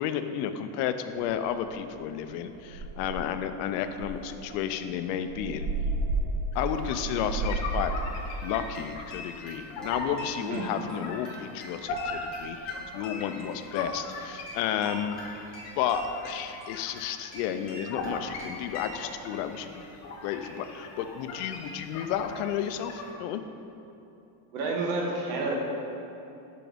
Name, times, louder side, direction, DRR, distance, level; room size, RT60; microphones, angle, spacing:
voice 1, 0.0-5.7 6.5-7.9 8.4-15.2 15.8-19.8 20.2-23.4, left 9 dB, 85° left, 9 dB, 0.6 m, -32 dB
sound 1, 1.2-1.3 1.7-2.0 2.3-2.4 2.7-3.4 3.9-8.1, right 2 dB, 45° right, 0.5 m, -32 dB
sound 2, 6.5-23.1, left 2 dB, 35° left, 0.6 m, -40 dB
sound 3, 8.4-19.0, left 1 dB, ahead, 1.0 m, -46 dB
voice 2, 10.4-10.7 24.5-25.5, right 3 dB, 75° right, -1 dB, 1.3 m, -30 dB
6.1 x 5.7 x 3.4 m, 2.9 s
cardioid pair, 175°, 47 cm